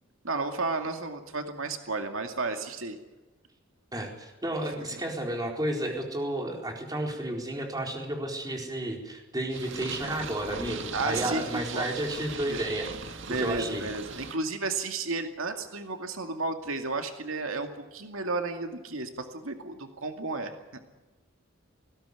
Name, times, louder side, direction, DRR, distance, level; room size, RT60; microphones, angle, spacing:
voice 1, 0.2-3.0 4.6-5.0 10.9-11.9 12.5-12.6 13.3-20.8, right 3 dB, 90° right, 5 dB, 2.3 m, -33 dB
voice 2, 3.9-12.9 13.4-13.9, right 1 dB, 20° right, 1 dB, 4.3 m, -32 dB
Purr, 9.5-14.4, right 4 dB, 65° right, 2.0 m, -39 dB
20.0 x 17.0 x 9.8 m, 1.1 s
head